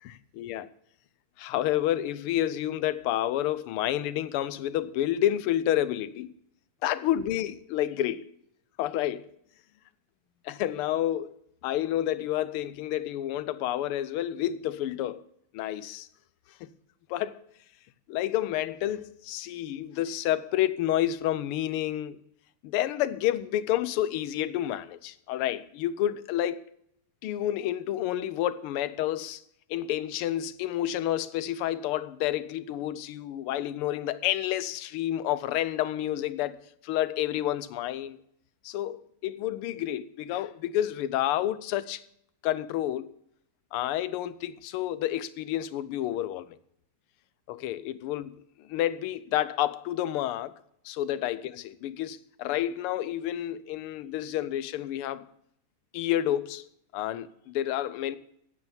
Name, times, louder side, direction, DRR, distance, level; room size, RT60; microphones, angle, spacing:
voice 1, 0.0-0.7 1.4-6.3 6.8-8.2 8.8-9.3 10.4-11.3 11.6-15.2 15.5-16.1 16.6-16.7 17.1-17.4 18.1-22.2 22.6-26.6 27.2-29.4 29.7-38.2 38.6-42.0 42.4-43.1 43.7-46.6 47.5-50.5 50.8-55.3 55.9-58.2, left 12 dB, 90° left, 1.6 m, -29 dB
9.1 x 8.6 x 7.1 m
omnidirectional pair, 2.4 m